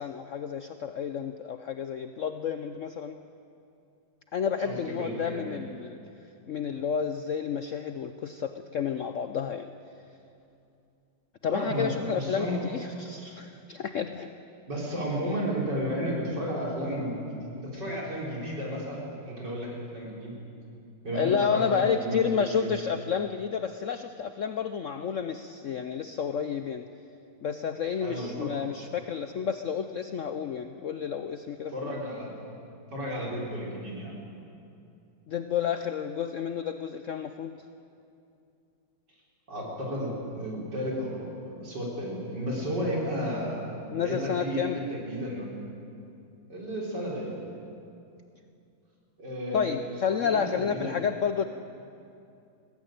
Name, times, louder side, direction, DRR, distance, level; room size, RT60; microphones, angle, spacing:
voice 1, 0.0-3.2 4.3-6.0 6.5-9.7 11.4-14.3 21.1-26.9 27.4-31.9 35.3-37.6 43.9-44.8 49.5-51.4, left 7 dB, 85° left, 9 dB, 0.6 m, -30 dB
voice 2, 4.6-5.6 11.5-12.7 14.7-20.3 21.0-22.7 28.0-28.6 31.7-32.3 32.9-34.1 39.5-43.6 44.0-45.5 46.5-47.4 49.2-49.8 50.2-50.9, equal, 55° right, -3 dB, 5.0 m, -33 dB
20.0 x 16.0 x 9.1 m, 2.6 s
omnidirectional pair, 2.2 m